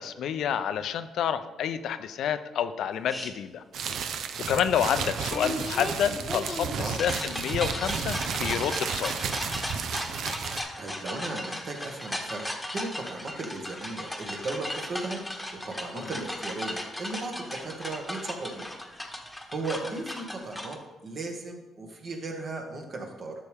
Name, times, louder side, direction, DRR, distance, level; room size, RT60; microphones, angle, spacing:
voice 1, 0.0-3.6 4.5-9.3 16.0-16.1, left 9 dB, 75° left, 11 dB, 0.5 m, -29 dB
sound 1, 3.1-3.3 5.3-20.7, left 1 dB, 5° left, 1.3 m, -36 dB
sound 2, 3.7-10.6, right 6 dB, 70° right, 0.6 m, -33 dB
voice 2, 10.5-12.5 12.7-15.2 15.6-18.7 19.3-23.3, right 3 dB, 50° right, 2 dB, 1.9 m, -36 dB
11.0 x 6.8 x 3.5 m, 1.1 s
cardioid pair, 90°, 0 cm